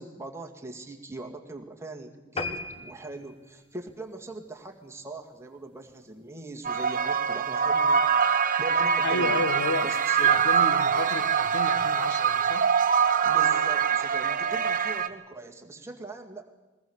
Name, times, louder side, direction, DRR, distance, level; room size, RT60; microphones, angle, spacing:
voice 1, 0.0-8.1 8.6-9.4 9.8-10.4 13.2-16.6, right 2 dB, 10° right, 2 dB, 2.0 m, -41 dB
sound 1, 2.4-5.1 5.6-5.8 6.2-6.3 6.6-6.7 7.0-7.1, left 3 dB, 25° left, 1.1 m, -38 dB
sound 2, 6.6-15.1, right 7 dB, 40° right, 0.9 m, -24 dB
voice 2, 9.0-9.9 10.2-12.7, left 2 dB, 85° left, 10 dB, 1.6 m, -31 dB
22.0 x 19.0 x 7.1 m, 1.2 s
head